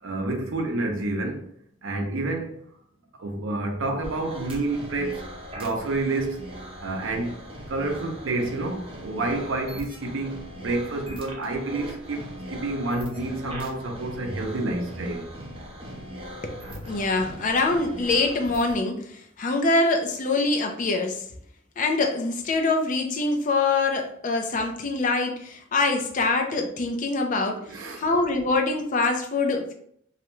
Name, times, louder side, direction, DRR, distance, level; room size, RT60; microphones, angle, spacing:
voice 1, 0.0-1.5 1.8-2.6 3.2-5.2 5.5-6.4 6.8-7.3 7.7-15.3 27.7-28.1, right 2 dB, 70° right, 0.5 m, -29 dB
sound 1, 4.0-18.8, equal, 25° right, 0.6 m, -40 dB
voice 2, 16.4-21.2 21.8-27.6 28.0-29.7, left 3 dB, 40° left, 0.4 m, -24 dB
2.4 x 2.1 x 3.0 m
head